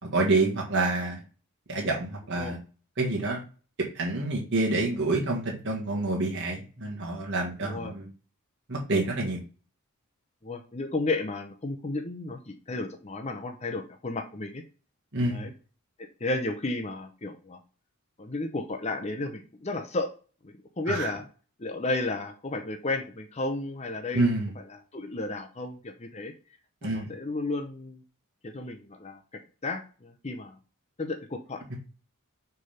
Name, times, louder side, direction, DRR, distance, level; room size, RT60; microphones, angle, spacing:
voice 1, 0.0-1.2 1.7-2.6 3.0-3.4 4.0-8.1 8.7-9.4 15.1-15.4 20.9-21.1 24.1-24.5 26.8-27.1, right 2 dB, 55° right, -2 dB, 1.7 m, -27 dB
voice 2, 7.6-7.9 10.4-14.6 15.3-15.5 16.2-17.6 18.2-20.1 20.4-21.2 21.6-24.3 24.7-26.3 26.8-28.0 28.4-30.6 31.0-31.8, left 2 dB, 30° left, 4 dB, 0.7 m, -33 dB
6.4 x 3.5 x 5.7 m, 0.36 s
head